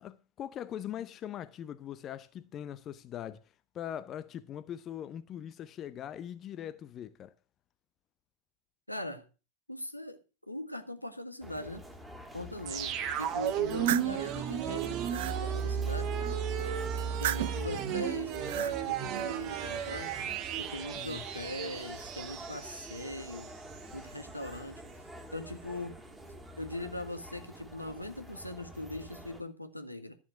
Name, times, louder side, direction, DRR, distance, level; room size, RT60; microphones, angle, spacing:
voice 1, 0.0-3.4 3.7-7.3 20.9-21.2, left 10 dB, 30° left, 0.7 m, -41 dB
voice 2, 8.9-9.2 9.7-10.2 10.5-11.9 12.3-16.1 17.2-20.1 20.6-23.5 23.9-24.8 25.3-26.0 26.6-30.2, left 1 dB, 90° left, 1.7 m, -41 dB
sound 1, 11.4-29.4, right 1 dB, 5° right, 2.1 m, -48 dB
sound 2, 12.7-23.5 23.8-23.9, right 8 dB, 40° right, 1.6 m, -34 dB
sound 3, 13.5-14.2 14.7-15.4 17.0-17.7 18.3-18.8, right 15 dB, 55° right, 0.5 m, -35 dB
12.5 x 7.3 x 6.1 m
figure-of-eight pair, 90°, 0 cm